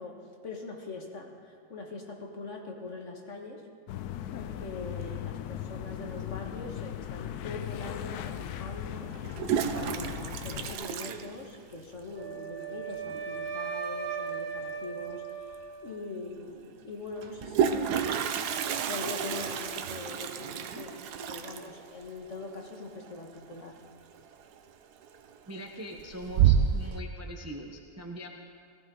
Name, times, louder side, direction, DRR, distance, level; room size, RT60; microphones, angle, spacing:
voice 1, 0.0-3.7 4.3-9.1 9.7-18.2 18.9-23.8, left 3 dB, 50° left, 1 dB, 1.8 m, -42 dB
sound 1, 3.9-10.8, left 11 dB, 80° left, 1.1 m, -38 dB
Toilet flush, 7.8-7.9 9.1-12.0 12.2-12.3 12.6-12.7 13.0-13.4 15.1-15.2 15.5-15.6 17.2-23.9 24.1-24.6 25.0-25.5 25.9-26.9, right 8 dB, 90° right, 1.3 m, -30 dB
Wind instrument woodwind instrument, 12.1-16.3, right 6 dB, 70° right, 2.0 m, -37 dB
voice 2, 25.5-28.3, equal, 15° right, 2 dB, 0.7 m, -42 dB
18.0 x 15.5 x 3.9 m, 2.1 s
omnidirectional pair, 1.7 m